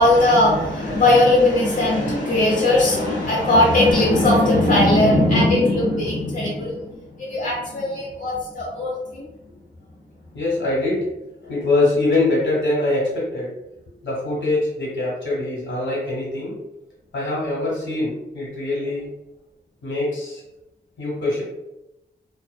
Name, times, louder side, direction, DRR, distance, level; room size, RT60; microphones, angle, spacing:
voice 1, 0.0-6.9 7.2-9.3, left 1 dB, 45° left, -6 dB, 0.8 m, -18 dB
voice 2, 10.3-11.0 11.4-13.5 14.0-16.5 17.1-19.1 19.8-20.4 21.0-21.4, left 2 dB, 80° left, -5 dB, 1.1 m, -23 dB
2.6 x 2.1 x 2.2 m, 0.92 s
wide cardioid pair, 95°, 19 cm